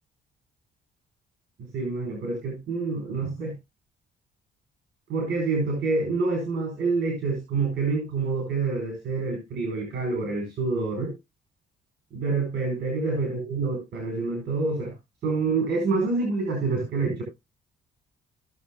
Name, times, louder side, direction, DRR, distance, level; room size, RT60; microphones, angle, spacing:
voice 1, 1.7-3.5 5.1-11.1 12.1-14.9 15.2-17.2, right 3 dB, 65° right, 2 dB, 4.7 m, -27 dB
17.5 x 7.1 x 2.3 m, 0.22 s
cardioid pair, 90°, 20 cm